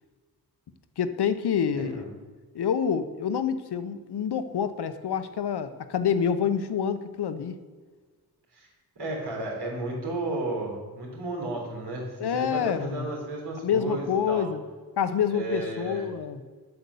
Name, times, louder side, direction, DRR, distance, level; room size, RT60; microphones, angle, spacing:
voice 1, 1.0-2.1 2.5-7.6 12.2-13.1 13.6-14.6 15.0-16.4, left 7 dB, 80° left, 10 dB, 0.9 m, -27 dB
voice 2, 1.7-2.1 8.5-8.7 9.0-14.5 15.3-16.1, right 2 dB, 85° right, -2 dB, 3.9 m, -33 dB
8.1 x 7.8 x 7.0 m, 1.4 s
wide cardioid pair, 130°, 39 cm